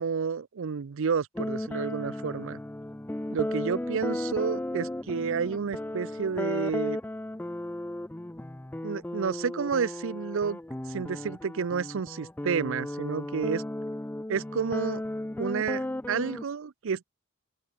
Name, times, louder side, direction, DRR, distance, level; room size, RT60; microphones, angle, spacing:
voice 1, 0.0-2.6 3.3-7.0 8.8-10.6 10.9-13.6 14.3-15.0 15.4-17.0, right 6 dB, 65° right, 0.5 m, -30 dB
sound 1, 1.3-16.4, left 1 dB, 10° left, 0.4 m, -35 dB
open air
head